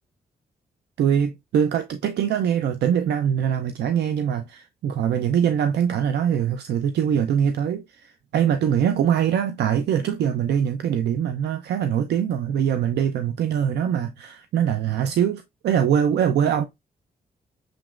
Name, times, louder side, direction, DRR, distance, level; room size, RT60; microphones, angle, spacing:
voice 1, 1.0-16.7, right 8 dB, 80° right, 0.5 m, -23 dB
6.3 x 2.9 x 2.4 m
supercardioid pair, 55°, 17 cm